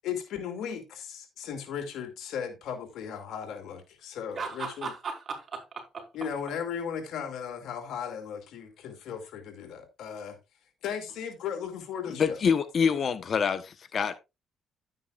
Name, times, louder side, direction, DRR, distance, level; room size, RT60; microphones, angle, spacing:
voice 1, 0.0-4.9 6.1-10.4 10.8-12.4, left 7 dB, 80° left, 2.4 m, -36 dB
voice 2, 4.3-6.1, right 4 dB, 45° right, 4.8 m, -37 dB
voice 3, 12.2-14.1, left 6 dB, 50° left, 1.0 m, -26 dB
11.5 x 9.3 x 2.4 m
cardioid pair, 90°, 0 cm